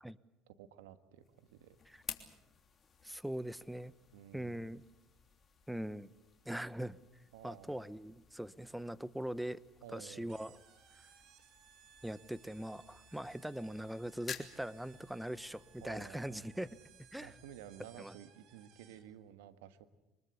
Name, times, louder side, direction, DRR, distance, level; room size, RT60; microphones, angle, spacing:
voice 1, 0.5-1.8 4.1-4.7 7.3-7.8 9.8-10.4 15.8-16.6 17.2-19.9, right 11 dB, 90° right, 11 dB, 1.5 m, -53 dB
sound 1, 1.2-18.2, left 6 dB, 35° left, 3.2 m, -54 dB
voice 2, 3.0-3.9 4.3-4.8 5.7-6.1 6.4-7.0 7.4-9.6 9.9-10.6 12.0-16.7 17.1-17.3 18.0-18.1, right 1 dB, 5° right, 17 dB, 1.0 m, -41 dB
sound 2, 10.3-19.2, right 9 dB, 65° right, 2.9 m, -63 dB
24.5 x 21.0 x 8.3 m, 0.97 s
supercardioid pair, 80°, 0 cm